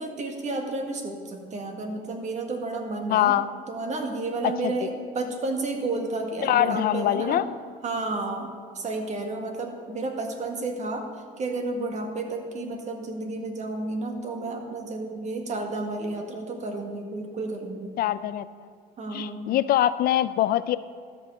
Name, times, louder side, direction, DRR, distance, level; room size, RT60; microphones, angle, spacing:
voice 1, 0.0-3.4 3.7-7.4 7.8-11.1 11.4-17.9 19.0-19.5, right 2 dB, 45° right, 3 dB, 1.8 m, -31 dB
voice 2, 3.1-3.5 4.6-4.7 6.4-7.4 18.0-18.4 19.1-20.8, left 12 dB, 65° left, 14 dB, 0.4 m, -23 dB
12.5 x 5.7 x 7.9 m, 2.1 s
cardioid pair, 110°, 17 cm